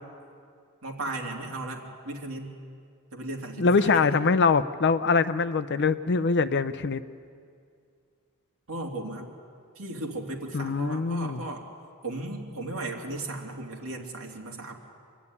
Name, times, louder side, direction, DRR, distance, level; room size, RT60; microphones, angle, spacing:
voice 1, 0.8-2.5 3.1-4.2 8.7-9.3 9.8-11.6 12.0-14.7, right 2 dB, 65° right, -1 dB, 2.8 m, -36 dB
voice 2, 3.6-7.0 10.5-11.4, left 4 dB, 50° left, 13 dB, 0.6 m, -23 dB
25.0 x 12.0 x 9.7 m, 2.3 s
head